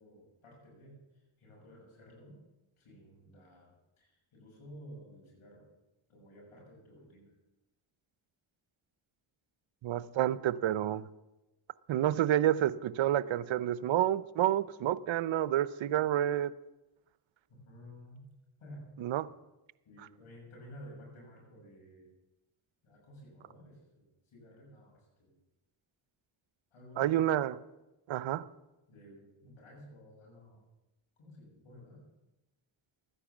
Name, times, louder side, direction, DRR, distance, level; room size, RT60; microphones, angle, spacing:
voice 1, 0.0-2.4 2.8-5.7 6.1-7.3 17.5-18.3 18.6-19.2 19.8-22.2 22.8-25.4 26.7-27.1 28.9-30.6 31.2-32.1, equal, 75° left, 6.6 m, -53 dB
voice 2, 9.8-11.1 11.9-16.5 19.0-19.3 27.0-27.6 28.1-28.5, right 12 dB, 70° right, 0.7 m, -29 dB
13.5 x 9.9 x 7.2 m
cardioid pair, 55°, 49 cm